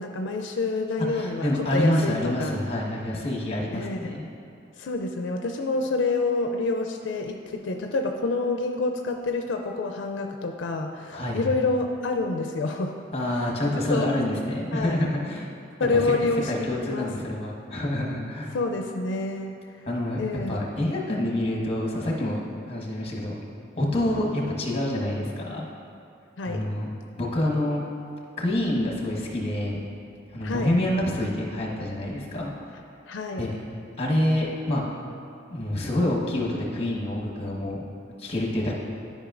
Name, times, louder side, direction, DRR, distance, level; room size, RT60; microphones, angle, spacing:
voice 1, 0.0-2.6 3.7-4.1 4.8-12.9 13.3-14.1 14.7-15.0 15.8-17.1 18.5-19.6 20.2-20.6 26.4-26.6 30.4-30.7 33.1-33.5, left 3 dB, 80° left, 3 dB, 0.4 m, -28 dB
voice 2, 1.1-4.3 11.1-11.5 13.1-15.5 15.9-16.1 16.5-18.6 19.9-20.2 20.5-22.4 22.7-23.3 23.7-25.6 26.4-26.9 27.2-27.8 28.4-29.8 30.3-32.5 33.4-33.5 34.0-34.8 35.5-37.9 38.2-38.7, left 1 dB, 35° left, -2 dB, 1.2 m, -27 dB
12.0 x 5.4 x 2.5 m, 2.5 s
head